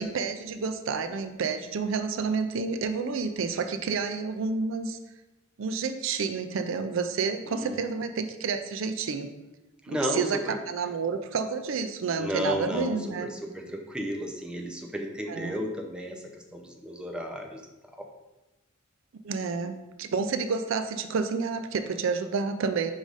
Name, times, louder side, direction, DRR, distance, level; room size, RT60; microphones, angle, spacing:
voice 1, 0.0-5.0 5.6-9.3 9.9-13.3 15.3-15.5 19.2-22.9, right 5 dB, 70° right, 9 dB, 0.4 m, -30 dB
voice 2, 9.8-10.6 12.2-16.2 16.5-17.6 18.0-18.1, equal, 5° right, 2 dB, 0.6 m, -33 dB
5.2 x 3.9 x 4.8 m, 1.0 s
head